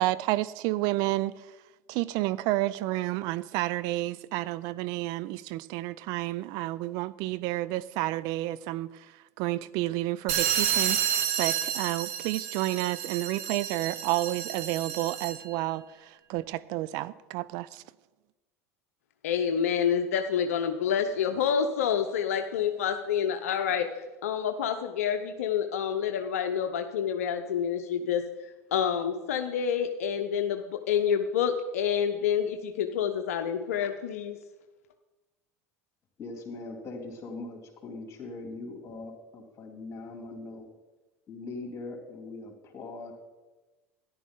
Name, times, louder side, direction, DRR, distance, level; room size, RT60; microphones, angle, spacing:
voice 1, 0.0-1.5 1.9-9.1 9.4-17.8, right 17 dB, 55° right, 0.4 m, -30 dB
sound 1, 10.3-15.5, right 9 dB, 70° right, 1.3 m, -30 dB
voice 2, 19.2-23.9 24.2-28.2 28.7-34.4, left 8 dB, 75° left, 0.7 m, -28 dB
voice 3, 36.2-40.7 41.3-43.1, left 3 dB, 35° left, 3.3 m, -41 dB
13.5 x 11.0 x 3.8 m
hypercardioid pair, 75°, 8 cm